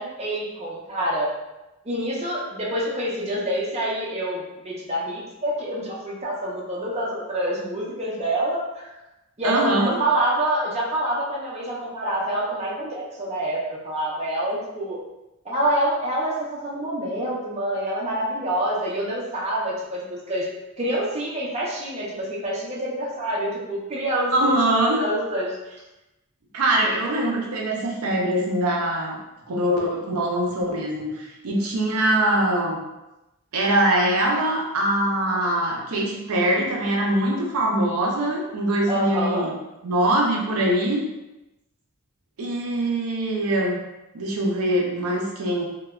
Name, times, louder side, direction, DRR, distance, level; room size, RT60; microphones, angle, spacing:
voice 1, 0.0-1.3 1.8-8.9 9.4-15.0 15.4-20.5 20.8-24.5 24.9-25.6 38.9-39.5, right 1 dB, 30° right, -5 dB, 0.5 m, -27 dB
voice 2, 9.4-10.0 24.3-25.0 26.5-29.2 29.5-32.8 33.5-39.5 39.8-41.1 42.4-43.8 44.1-45.6, right 1 dB, 85° right, -1 dB, 0.5 m, -23 dB
3.1 x 2.1 x 2.3 m, 0.98 s
head